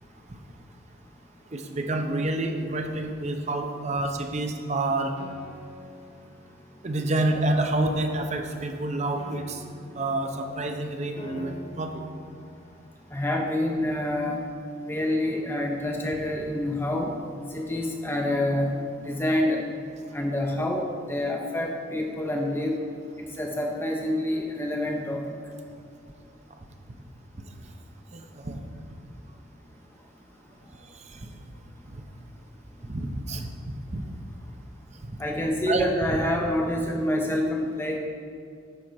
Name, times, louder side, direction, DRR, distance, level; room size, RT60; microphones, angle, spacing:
voice 1, 1.5-5.1 6.8-9.6 10.0-12.0 28.1-28.6 30.9-31.3 31.9-32.0 32.9-34.0 35.0-35.2 35.7-35.9, right 2 dB, 35° right, 5 dB, 0.6 m, -28 dB
Piano, 5.2-13.2, equal, 30° left, 0.8 m, -47 dB
voice 2, 13.1-14.5 14.9-17.1 17.5-19.6 20.1-22.8 23.4-25.2 35.2-38.0, left 1 dB, 10° left, 1 dB, 0.5 m, -27 dB
10.0 x 4.2 x 6.1 m, 2.4 s
head